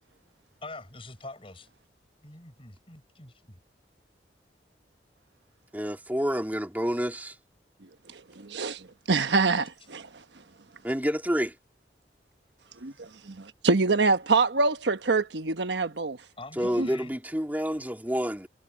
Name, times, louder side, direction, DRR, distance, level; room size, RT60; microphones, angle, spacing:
voice 1, 0.6-1.7 2.2-3.6 16.4-17.1, left 2 dB, 30° left, 6.9 m, -44 dB
voice 2, 5.7-7.4 10.8-11.5 16.6-18.5, equal, 10° right, 3.0 m, -28 dB
voice 3, 8.1-10.1 12.8-16.2 16.8-16.9, right 3 dB, 75° right, 1.2 m, -25 dB
head